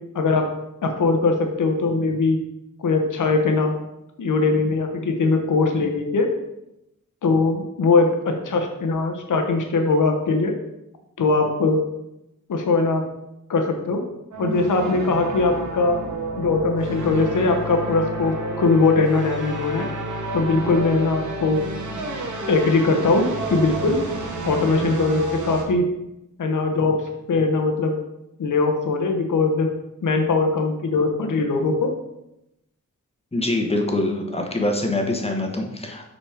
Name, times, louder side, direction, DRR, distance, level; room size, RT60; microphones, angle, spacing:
voice 1, 0.8-2.4 2.8-3.8 4.2-6.3 7.2-10.5 11.2-11.8 12.5-13.0 13.5-14.0 14.4-16.0 16.4-19.9 20.3-21.6 22.5-24.0 24.4-25.9 26.4-27.0 27.3-28.0 28.4-29.7 30.0-31.9, left 3 dB, 80° left, 4 dB, 1.1 m, -21 dB
sound 1, 14.3-25.6, right 2 dB, 70° right, 1.1 m, -30 dB
voice 2, 33.3-36.1, left 1 dB, 20° left, 3 dB, 1.2 m, -24 dB
6.0 x 4.2 x 4.9 m, 0.87 s
wide cardioid pair, 80°, 31 cm